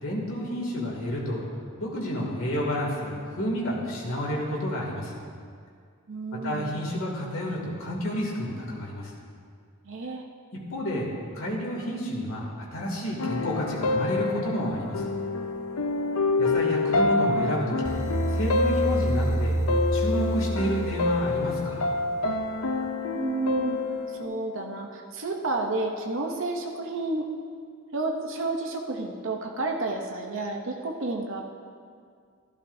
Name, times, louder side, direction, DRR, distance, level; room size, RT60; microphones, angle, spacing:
voice 1, 0.0-1.4 1.8-5.2 6.4-9.1 10.7-11.1 11.3-15.1 16.4-17.9 18.3-19.6 19.9-21.9, equal, 65° left, -3 dB, 2.5 m, -30 dB
voice 2, 6.1-6.7 9.8-10.2 23.1-23.8 24.2-27.3 27.9-31.4, right 3 dB, 60° right, 1 dB, 0.8 m, -30 dB
sound 1, 13.2-24.2, left 3 dB, 80° left, 0.6 m, -27 dB
sound 2, 17.8-21.9, right 2 dB, 15° right, 0.3 m, -28 dB
14.0 x 12.0 x 2.7 m, 2.2 s
head